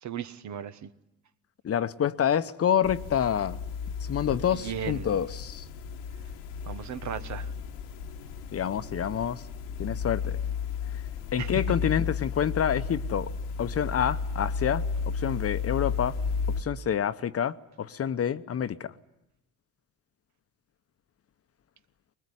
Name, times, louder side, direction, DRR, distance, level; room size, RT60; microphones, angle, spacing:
voice 1, 0.0-0.9 4.5-5.1 6.6-7.5 11.4-11.6, right 9 dB, 55° right, 1.3 m, -36 dB
voice 2, 1.6-3.6 4.1-5.6 8.5-9.4 9.8-10.4 11.3-13.3 13.6-14.8 15.1-16.2 16.6-18.9, left 9 dB, 45° left, 1.0 m, -27 dB
sound 1, 2.8-16.6, left 5 dB, 85° left, 1.5 m, -33 dB
22.0 x 20.5 x 9.9 m
supercardioid pair, 65°, 33 cm